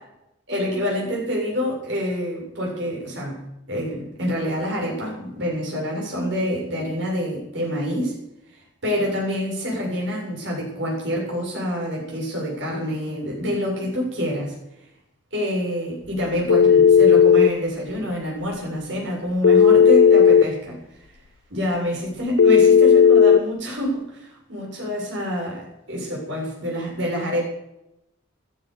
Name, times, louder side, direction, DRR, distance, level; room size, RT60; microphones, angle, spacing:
voice 1, 0.5-8.2 8.8-14.5 15.3-20.8 21.5-27.4, equal, 60° right, -2 dB, 7.7 m, -27 dB
Telephone, 16.5-17.5 19.4-20.5 22.4-23.4, left 7 dB, 80° left, 0.5 m, -13 dB
15.0 x 12.0 x 6.9 m, 0.85 s
head